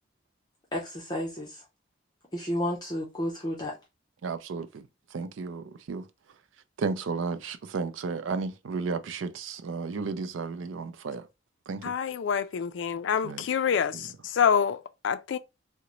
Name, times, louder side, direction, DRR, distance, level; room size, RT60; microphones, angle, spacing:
voice 1, 0.7-1.6 2.3-3.7, left 1 dB, 20° left, 0.6 m, -31 dB
voice 2, 4.2-6.1 6.8-11.3 11.7-12.0 13.2-13.5, right 4 dB, 80° right, 0.4 m, -33 dB
voice 3, 11.8-15.4, left 7 dB, 70° left, 0.3 m, -27 dB
3.8 x 2.1 x 2.9 m
head